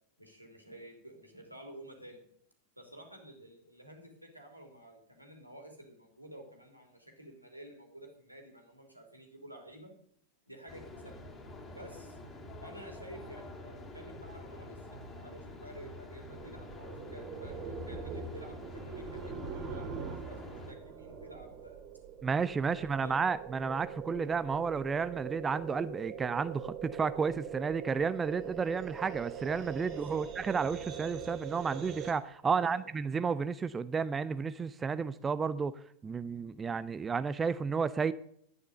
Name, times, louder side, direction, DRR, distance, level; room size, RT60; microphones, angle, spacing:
voice 1, 0.2-2.2 2.8-9.9 10.5-11.3 11.7-12.2 12.6-21.8 22.7-23.2 29.9-30.2 32.5-32.8, right 1 dB, 90° right, 3 dB, 3.1 m, -51 dB
sound 1, 10.7-20.7, left 2 dB, 20° left, 2.3 m, -47 dB
sound 2, 16.3-32.1, right 7 dB, 35° right, 2.3 m, -43 dB
voice 2, 22.2-35.7 36.0-38.1, right 5 dB, 15° right, 14 dB, 0.5 m, -32 dB
11.5 x 9.4 x 6.8 m, 0.68 s
figure-of-eight pair, 90°, 0 cm